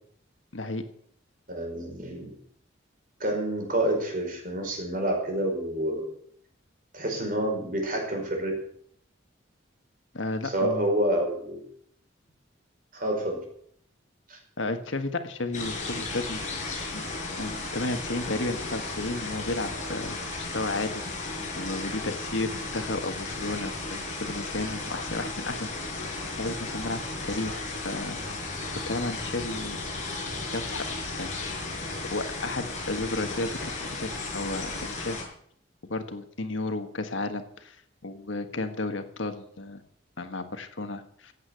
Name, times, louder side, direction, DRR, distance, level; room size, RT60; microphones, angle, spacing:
voice 1, 0.5-0.8 10.1-10.9 14.6-17.1 17.4-26.1 26.4-28.5 28.9-29.8 30.5-30.9 31.2-31.3 31.6-31.8 32.1-35.2 35.9-37.8 38.0-39.8 40.2-41.3, left 2 dB, 80° left, 7 dB, 1.6 m, -33 dB
voice 2, 1.5-2.3 3.2-6.0 6.9-8.5 10.5-11.6 12.9-13.4 14.3-14.4, right 1 dB, 45° right, 1 dB, 5.2 m, -28 dB
sound 1, 15.5-35.2, left 3 dB, 40° left, 5.3 m, -35 dB
15.5 x 8.1 x 8.1 m, 0.66 s
head